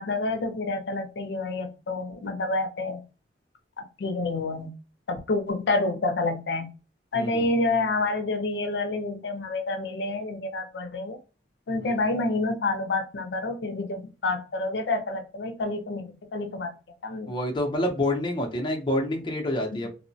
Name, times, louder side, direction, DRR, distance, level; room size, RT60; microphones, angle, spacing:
voice 1, 0.0-3.0 3.8-4.7 5.1-6.7 7.1-11.2 11.7-16.7 17.0-17.3 19.7-19.9, left 2 dB, 75° left, 0.5 m, -28 dB
voice 2, 7.1-7.5 11.8-12.0 17.3-19.9, left 1 dB, 25° left, 0.6 m, -27 dB
3.0 x 2.1 x 2.6 m
head